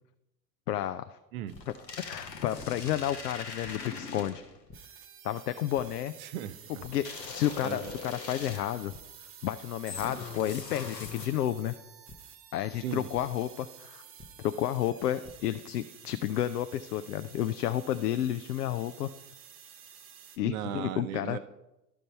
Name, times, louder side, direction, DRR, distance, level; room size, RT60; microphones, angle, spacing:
voice 1, 0.7-1.2 2.0-4.4 5.2-6.1 6.8-8.9 9.4-11.7 12.5-14.0 14.4-19.1 20.4-21.4, left 12 dB, 75° left, 11 dB, 0.5 m, -31 dB
sound 1, 1.5-4.6 7.0-8.9 9.9-11.6, left 4 dB, 90° left, 1.0 m, -42 dB
sound 2, 1.5-1.6 2.6-2.7 3.6-3.7 4.7-4.8 5.7-5.8 6.8-6.9 7.3-7.5 7.8-8.0 8.9-9.0 10.0-10.1 11.0-11.1 12.1-12.2 13.1-13.2 14.2-14.3 15.0-15.3, left 3 dB, 15° left, 0.7 m, -49 dB
sound 3, 4.7-20.4, right 8 dB, 25° right, 0.9 m, -51 dB
voice 2, 6.2-6.9 7.6-7.9 12.8-13.1 20.4-21.4, right 11 dB, 60° right, 13 dB, 0.7 m, -37 dB
12.5 x 5.2 x 4.3 m, 0.94 s
figure-of-eight pair, 80°, 49 cm